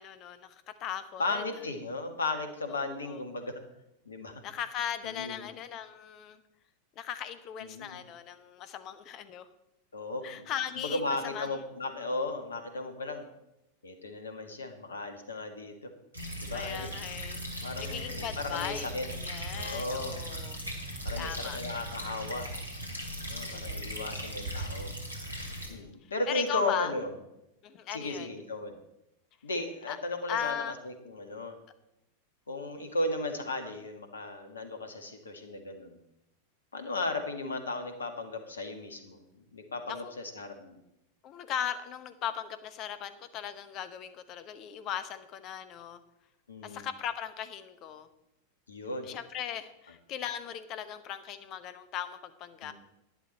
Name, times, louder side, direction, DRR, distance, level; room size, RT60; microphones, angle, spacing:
voice 1, 0.0-1.4 2.7-3.2 4.4-6.4 7.0-9.5 10.2-11.5 16.5-20.6 21.2-21.6 23.4-23.9 25.7-26.9 27.6-28.3 29.9-30.0 30.3-30.8 39.9-40.1 41.2-46.0 46.6-48.1 49.0-52.7, left 9 dB, 35° left, 12 dB, 1.0 m, -38 dB
voice 2, 1.2-3.6 4.1-4.4 5.0-5.5 7.6-8.0 9.9-10.5 10.8-13.3 13.8-15.9 16.4-16.9 17.6-19.1 19.5-20.2 21.0-22.5 23.3-24.9 25.7-27.1 27.9-28.8 29.4-31.6 32.5-36.0 36.7-39.2 39.5-40.8 46.5-46.9 48.7-49.1 52.6-52.7, left 2 dB, 70° left, 7 dB, 1.6 m, -35 dB
sound 1, 16.1-25.7, equal, 85° right, 2.4 m, -38 dB
11.5 x 10.5 x 4.3 m, 0.88 s
figure-of-eight pair, 90°, 0 cm